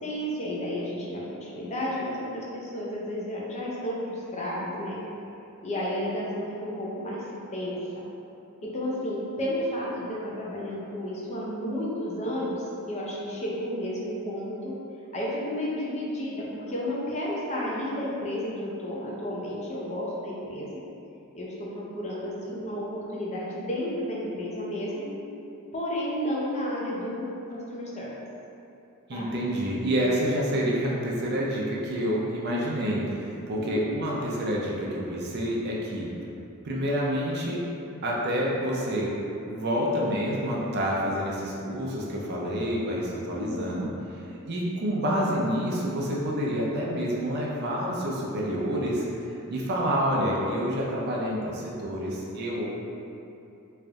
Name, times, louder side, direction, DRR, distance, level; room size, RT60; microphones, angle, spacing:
voice 1, 0.0-5.0 5.6-7.2 7.5-8.0 8.6-14.7 15.1-20.8 21.3-25.1 25.7-28.1 29.1-29.4 33.6-34.0 43.3-43.8 45.2-45.3, equal, 30° left, -5 dB, 0.6 m, -32 dB
voice 2, 29.1-36.1 36.6-37.6 38.0-39.1 39.4-43.9 44.4-49.1 49.5-52.7, equal, 50° right, -4 dB, 0.5 m, -28 dB
3.3 x 2.6 x 3.4 m, 2.8 s
head